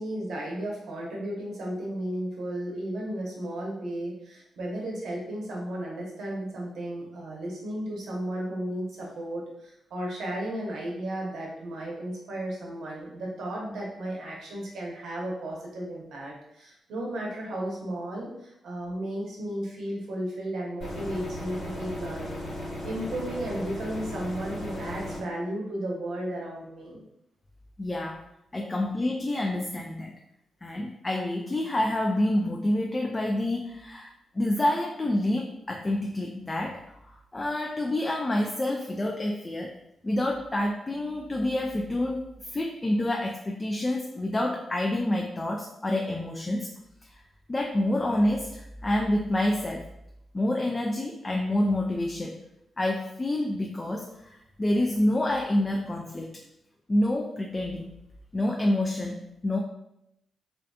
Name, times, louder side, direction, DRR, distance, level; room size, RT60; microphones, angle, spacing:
voice 1, 0.0-22.4 22.8-27.0, right 1 dB, 75° right, -3 dB, 0.7 m, -34 dB
sound 1, 20.8-25.2, left 1 dB, 65° left, 1.3 m, -36 dB
voice 2, 27.8-28.3 28.5-30.1 30.6-39.8 40.0-46.7 47.0-47.1 47.5-49.9 50.3-52.4 52.8-56.4 56.9-57.9 58.3-59.6, left 1 dB, 30° left, 0 dB, 0.3 m, -28 dB
2.4 x 2.4 x 2.2 m, 0.83 s
supercardioid pair, 45°, 0 cm